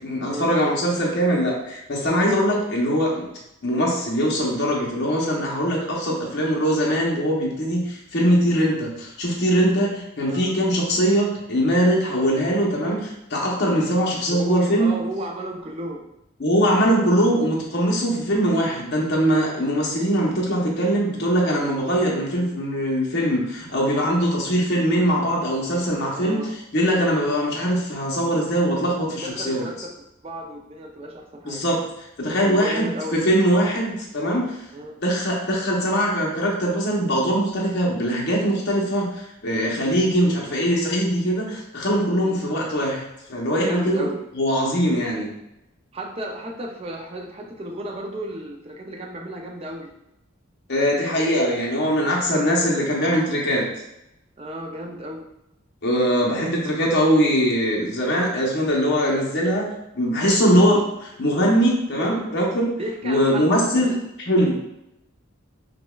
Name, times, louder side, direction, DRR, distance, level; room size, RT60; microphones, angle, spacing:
voice 1, 0.0-3.3 3.6-14.9 16.4-26.4 26.7-29.6 31.4-31.8 32.2-34.5 35.0-43.0 43.3-44.1 44.4-45.3 50.7-53.6 55.8-59.7 59.9-62.7 63.0-63.9 64.3-64.5, equal, 55° left, -3 dB, 0.7 m, -21 dB
voice 2, 10.2-10.5 14.3-16.1 26.1-26.5 29.1-29.9 30.2-31.6 32.3-33.2 34.7-34.9 42.2-42.4 43.6-44.2 45.9-49.9 52.0-53.0 54.4-55.3 62.8-64.0, right 1 dB, 30° right, 1 dB, 0.4 m, -34 dB
5.1 x 2.1 x 2.3 m, 0.86 s
head